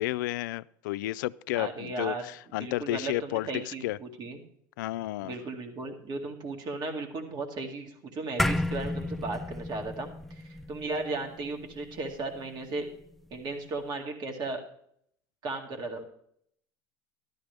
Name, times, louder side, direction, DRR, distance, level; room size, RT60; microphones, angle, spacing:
voice 1, 0.0-4.0 4.8-5.3, left 16 dB, 90° left, 0.4 m, -32 dB
voice 2, 1.6-2.2 2.6-4.4 5.2-10.1 10.4-12.9 13.3-14.6 15.4-16.0, right 3 dB, 45° right, 2.1 m, -35 dB
sound 1, 8.4-13.0, left 1 dB, ahead, 0.4 m, -33 dB
12.5 x 12.0 x 3.4 m
supercardioid pair, 115°, 10 cm